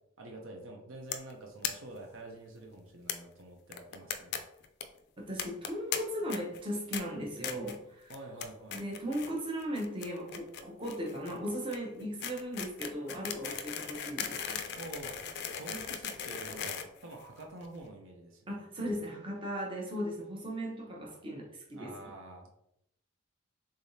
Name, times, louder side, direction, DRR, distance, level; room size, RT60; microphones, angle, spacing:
voice 1, 0.2-4.3 8.1-8.8 14.8-15.3 15.5-18.6 21.7-22.5, right 2 dB, 65° right, 1 dB, 0.6 m, -47 dB
sound 1, 1.1-1.3 1.6-1.7 2.0-2.1 2.3-2.4 3.1-3.2 3.7-4.4 4.6-4.8 5.4-6.0 6.3-6.6 6.9-7.0 7.4-7.8 8.1-8.5 8.7-9.3 9.6-17.6, left 8 dB, 50° left, 0.4 m, -38 dB
voice 2, 5.3-8.1 8.7-14.6 18.5-21.9, equal, 25° right, -2 dB, 0.8 m, -37 dB
3.7 x 3.4 x 2.7 m, 0.79 s
head